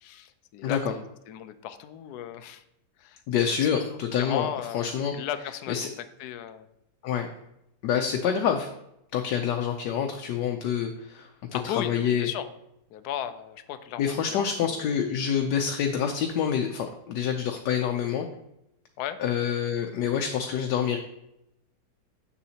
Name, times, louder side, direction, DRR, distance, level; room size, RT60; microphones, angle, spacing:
voice 1, 0.0-2.6 3.0-3.2 3.5-3.7 4.2-5.9 6.2-6.7 11.5-12.5 12.9-14.9 19.0-19.2, left 10 dB, 75° left, 11 dB, 1.0 m, -36 dB
voice 2, 0.6-0.9 3.3-4.5 4.7-5.1 5.7-5.9 7.0-7.3 7.8-8.7 9.1-12.3 14.0-18.3 19.2-21.0, left 8 dB, 90° left, 4 dB, 1.3 m, -27 dB
7.2 x 6.9 x 2.8 m, 0.81 s
omnidirectional pair, 1.8 m